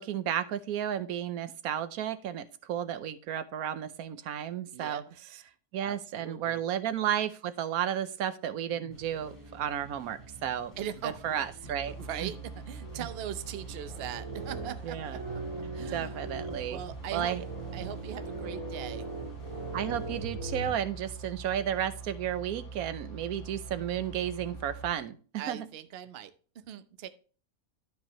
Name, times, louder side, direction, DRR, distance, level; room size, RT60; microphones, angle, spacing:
voice 1, 0.0-5.0 5.7-10.7 11.0-12.0 12.2-12.3 13.0-13.1 14.8-15.2 15.9-16.8 17.1-17.4 19.7-25.2 25.5-25.6, right 10 dB, 85° right, 12 dB, 1.2 m, -33 dB
voice 2, 4.7-5.4 5.8-6.6 10.8-11.4 11.9-15.2 15.7-16.2 16.7-17.4 17.7-19.1 25.3-27.1, right 10 dB, 55° right, 11 dB, 0.8 m, -40 dB
sound 1, 8.7-20.2, right 2 dB, 15° right, 3.9 m, -51 dB
sound 2, 11.6-24.9, right 4 dB, 60° left, 1.9 m, -44 dB
sound 3, 12.8-20.7, right 2 dB, 70° right, 3.2 m, -40 dB
11.5 x 5.3 x 2.9 m, 0.40 s
omnidirectional pair, 1.5 m